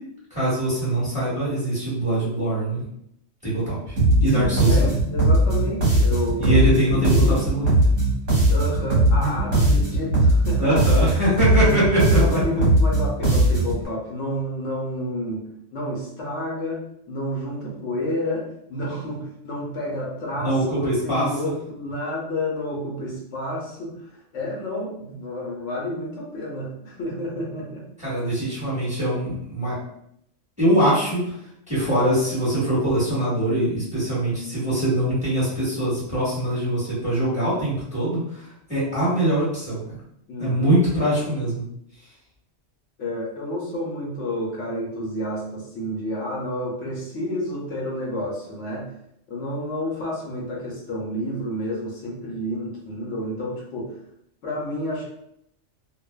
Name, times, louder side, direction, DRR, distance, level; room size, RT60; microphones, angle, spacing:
voice 1, 0.3-2.8 3.4-5.0 6.4-7.7 10.6-12.6 20.4-21.5 28.0-29.8 30.6-31.3 31.7-39.9 40.4-41.6, right 1 dB, 5° right, -10 dB, 1.2 m, -23 dB
sound 1, 4.0-13.8, right 1 dB, 75° right, 1.3 m, -19 dB
voice 2, 4.3-6.7 7.0-7.4 8.5-10.9 12.1-15.5 15.7-27.9 40.3-40.7 43.0-48.9 49.3-54.0 54.4-55.1, left 1 dB, 75° left, -3 dB, 1.0 m, -30 dB
2.6 x 2.2 x 2.2 m, 0.74 s
omnidirectional pair, 1.3 m